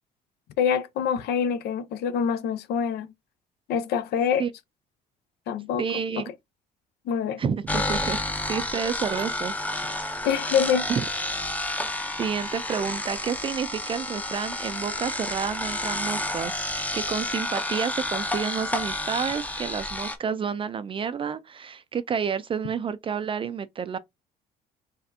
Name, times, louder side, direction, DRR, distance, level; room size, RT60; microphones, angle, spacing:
voice 1, 0.6-3.1 3.7-4.4 5.5-5.8 7.1-7.4 10.2-10.9, left 7 dB, 70° left, 0.6 m, -25 dB
voice 2, 5.8-6.3 7.4-8.2 8.4-10.3 10.9-11.1 12.2-16.5 16.9-24.0, right 7 dB, 30° right, 0.3 m, -30 dB
sound 1, 7.7-20.2, left 1 dB, 10° left, 0.6 m, -30 dB
4.1 x 3.3 x 2.6 m
cardioid pair, 110°, 17 cm